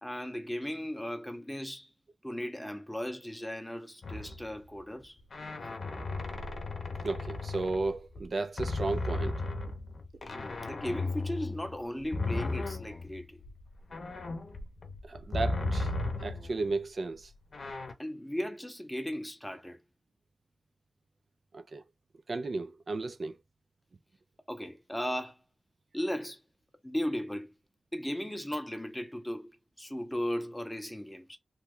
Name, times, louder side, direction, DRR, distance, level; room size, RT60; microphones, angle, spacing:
voice 1, 0.0-1.9 2.2-5.2 10.2-13.4 18.0-19.8 24.5-25.4 25.9-26.4 26.8-27.5 27.9-29.5 29.8-31.4, equal, 5° left, 0.6 m, -36 dB
sound 1, 4.0-4.6 5.3-8.3 8.6-16.7 17.5-17.9, left 2 dB, 50° left, 0.7 m, -35 dB
voice 2, 7.0-9.4 15.0-15.9 16.2-17.3 21.5-21.8 22.3-23.4, right 3 dB, 50° right, 0.3 m, -34 dB
3.0 x 2.2 x 3.6 m
wide cardioid pair, 130°, 0 cm